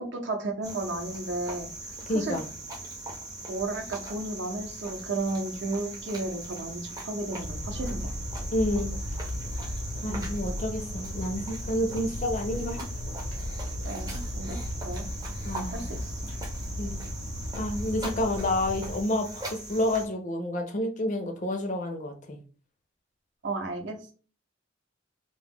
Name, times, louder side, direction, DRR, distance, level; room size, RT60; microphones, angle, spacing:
voice 1, 0.0-1.7 2.1-2.4 3.5-8.1 10.1-10.3 13.8-14.6 14.8-15.1 15.5-16.2 23.4-24.1, right 2 dB, 60° right, 3 dB, 0.6 m, -33 dB
Cricket, 0.6-20.1, right 2 dB, 20° right, 0.5 m, -41 dB
voice 2, 2.1-2.4 8.5-9.0 10.0-12.8 15.4-15.8 16.8-17.0 17.5-22.4, left 1 dB, 40° left, 5 dB, 0.4 m, -29 dB
sound 1, 7.4-19.0, left 1 dB, 85° left, 0.6 m, -35 dB
2.2 x 2.1 x 3.4 m, 0.39 s
head